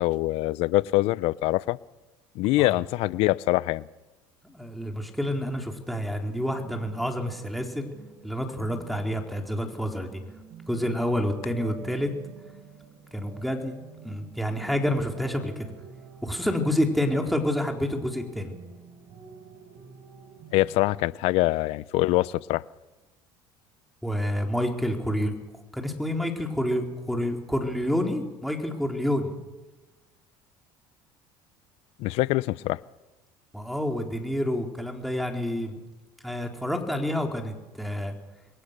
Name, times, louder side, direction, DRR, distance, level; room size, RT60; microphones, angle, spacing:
voice 1, 0.0-1.8 2.4-3.8 20.5-22.6 32.0-32.8, left 18 dB, 70° left, 0.7 m, -24 dB
voice 2, 4.5-7.9 8.2-10.2 10.7-12.1 13.1-13.7 14.0-15.7 16.2-18.5 24.0-25.3 25.7-29.3 33.5-35.8 36.2-38.1, left 1 dB, ahead, 3.9 m, -28 dB
sound 1, 6.4-20.8, right 7 dB, 55° right, 6.4 m, -48 dB
28.0 x 22.0 x 6.8 m
supercardioid pair, 100°, 11 cm